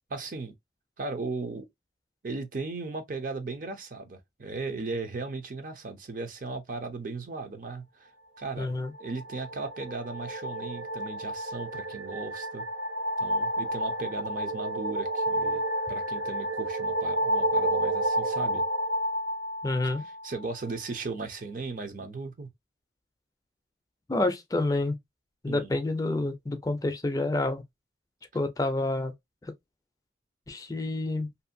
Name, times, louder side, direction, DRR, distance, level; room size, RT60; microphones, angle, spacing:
voice 1, 0.1-0.5 1.0-1.7 2.2-8.1 8.4-8.7 9.0-12.7 13.2-15.6 15.9-18.6 19.8-19.9 20.2-22.5 25.5-25.7, right 3 dB, 45° right, 0.5 m, -37 dB
voice 2, 8.6-8.9 19.6-20.0 24.1-25.0 25.4-27.6 28.3-29.1 29.4-29.5 30.5-31.3, left 2 dB, 20° left, 0.4 m, -28 dB
sound 1, 8.9-20.4, right 1 dB, 80° right, 1.3 m, -30 dB
2.7 x 2.4 x 2.5 m
head